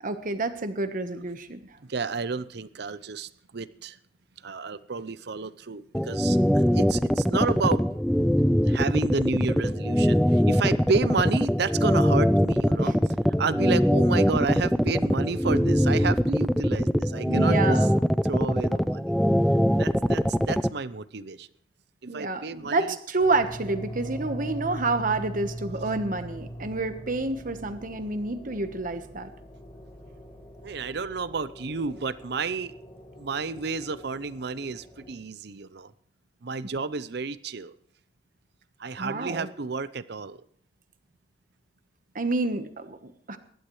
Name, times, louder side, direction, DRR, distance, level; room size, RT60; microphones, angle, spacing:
voice 1, 0.0-1.6 12.8-12.9 17.3-17.9 22.1-29.3 39.0-39.5 42.1-43.4, right 3 dB, 50° right, 9 dB, 1.2 m, -29 dB
voice 2, 1.9-4.0 4.4-7.9 8.6-12.9 13.4-17.8 18.2-19.1 19.8-21.5 22.1-23.0 30.6-32.7 33.2-35.9 36.4-37.7 38.8-40.4, right 4 dB, 65° right, 15 dB, 0.7 m, -31 dB
sound 1, 5.9-20.7, equal, ahead, 0.4 m, -22 dB
sound 2, 23.2-35.2, equal, 25° left, 3.6 m, -41 dB
24.0 x 12.0 x 3.2 m, 0.64 s
head